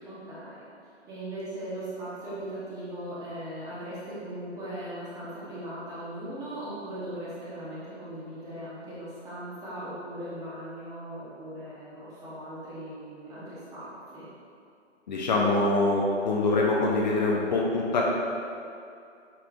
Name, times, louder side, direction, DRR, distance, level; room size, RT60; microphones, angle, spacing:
voice 1, 0.0-0.6 1.0-14.3, right 1 dB, 10° right, -9 dB, 1.0 m, -39 dB
voice 2, 15.1-18.0, left 2 dB, 40° left, -2 dB, 0.7 m, -24 dB
8.5 x 4.4 x 2.5 m, 2.5 s
figure-of-eight pair, 140°, 36 cm